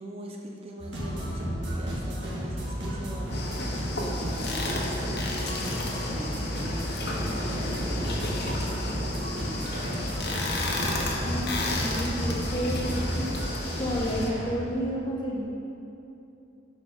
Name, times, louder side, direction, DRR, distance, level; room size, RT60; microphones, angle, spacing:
voice 1, 0.0-10.2, right 1 dB, 30° right, 0 dB, 0.6 m, -41 dB
sound 1, 0.8-14.5, equal, 65° right, 1.9 m, -32 dB
sound 2, 3.3-14.3, left 2 dB, 60° left, 1.1 m, -33 dB
voice 2, 11.0-11.5 11.8-13.2 13.8-15.4, equal, 25° left, -4 dB, 1.4 m, -31 dB
8.4 x 5.2 x 5.4 m, 2.8 s
head